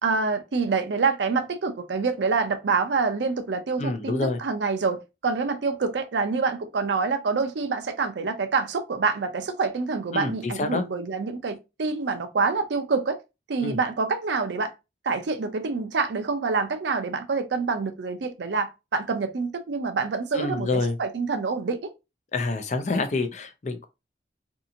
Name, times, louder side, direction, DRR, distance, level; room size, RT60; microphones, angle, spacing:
voice 1, 0.0-13.2 13.5-14.7 15.0-21.9, right 4 dB, 85° right, 0.5 m, -26 dB
voice 2, 3.8-4.4 10.1-10.8 13.6-13.8 20.3-21.0 22.3-23.9, left 3 dB, 40° left, 0.4 m, -27 dB
2.7 x 2.5 x 2.6 m
head